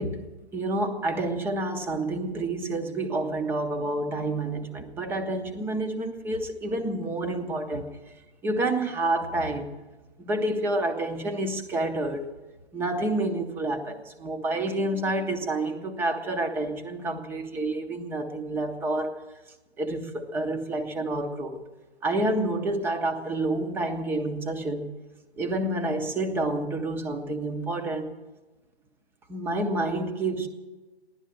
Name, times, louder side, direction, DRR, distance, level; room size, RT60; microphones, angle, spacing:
voice 1, 0.0-7.9 8.4-9.7 10.2-12.3 12.7-19.1 19.8-21.6 22.0-24.9 25.4-28.1 29.3-30.5, right 2 dB, 5° right, 6 dB, 0.7 m, -29 dB
16.0 x 11.5 x 7.6 m, 1.2 s
figure-of-eight pair, 135°, 32 cm